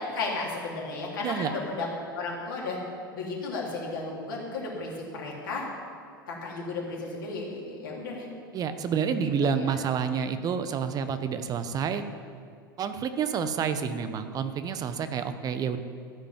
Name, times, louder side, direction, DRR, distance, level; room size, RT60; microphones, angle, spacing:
voice 1, 0.1-1.9 2.1-2.8 3.1-5.6 6.3-8.3 9.4-9.7, left 3 dB, 70° left, -3 dB, 3.2 m, -34 dB
voice 2, 1.2-1.5 8.5-12.0 12.8-15.8, right 7 dB, 35° right, 10 dB, 0.9 m, -29 dB
14.0 x 5.3 x 9.0 m, 2.3 s
figure-of-eight pair, 85°, 11 cm